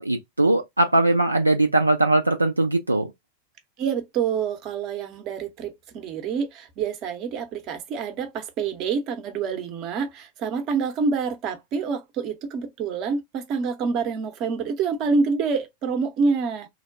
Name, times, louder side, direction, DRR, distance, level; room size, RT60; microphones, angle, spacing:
voice 1, 0.0-3.1, right 2 dB, 85° right, 0.4 m, -20 dB
voice 2, 3.8-16.7, right 5 dB, 40° right, 0.7 m, -27 dB
3.1 x 2.1 x 2.5 m
figure-of-eight pair, 90°, 0 cm